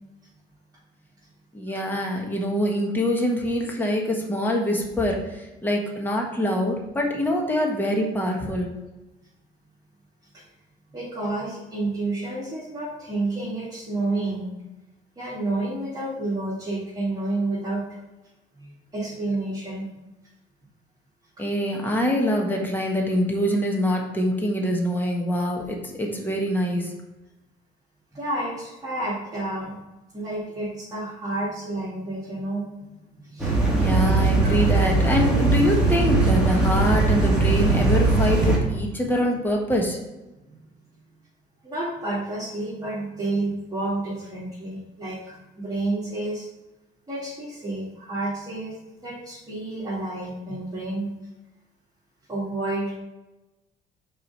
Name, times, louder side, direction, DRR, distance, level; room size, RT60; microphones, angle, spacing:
voice 1, 1.5-8.7 21.4-26.9 33.7-40.0, equal, 10° left, 0 dB, 1.4 m, -24 dB
voice 2, 10.9-14.5 15.2-17.8 18.6-19.9 28.1-29.8 30.1-32.8 33.1-34.0 40.5-40.6 41.6-46.5 47.1-48.7 49.0-51.1 52.3-53.0, right 2 dB, 20° right, -10 dB, 2.7 m, -30 dB
sound 1, 33.4-38.6, right 3 dB, 5° right, 2.1 m, -20 dB
4.9 x 4.9 x 6.0 m, 1.0 s
cardioid pair, 110°, 17 cm